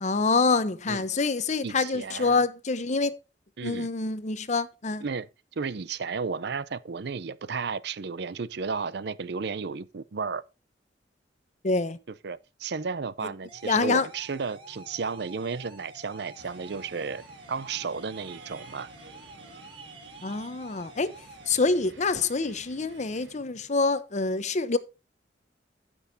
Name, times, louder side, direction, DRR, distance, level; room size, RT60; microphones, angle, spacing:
voice 1, 0.0-3.1 3.6-5.0 11.6-12.0 13.6-14.1 20.2-21.1 21.5-24.8, left 3 dB, 40° left, 0.8 m, -26 dB
voice 2, 1.6-2.4 3.6-3.9 5.0-5.3 5.6-10.4 12.2-17.2 17.5-18.9, right 5 dB, 65° right, 0.6 m, -33 dB
sound 1, 13.5-23.7, right 2 dB, 15° left, 4.5 m, -60 dB
sound 2, 13.5-21.5, right 2 dB, 30° right, 2.4 m, -49 dB
sound 3, 16.3-23.4, right 4 dB, 90° right, 2.1 m, -51 dB
15.0 x 6.3 x 2.7 m
head